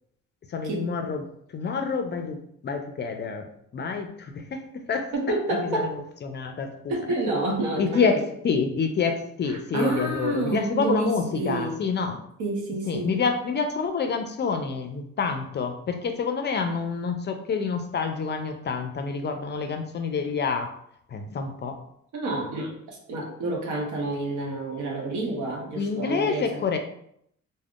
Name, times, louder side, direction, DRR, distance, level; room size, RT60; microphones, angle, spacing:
voice 1, 0.5-1.3 1.5-5.1 5.5-6.9 7.8-12.2 12.9-20.7 21.1-21.8 25.8-26.8, left 5 dB, 35° left, 6 dB, 0.4 m, -28 dB
voice 2, 5.1-5.9 6.9-8.2 9.5-11.8 12.4-13.1 22.1-26.6, right 2 dB, 75° right, 0 dB, 0.8 m, -29 dB
3.4 x 2.1 x 2.4 m, 0.71 s
cardioid pair, 90°, 30 cm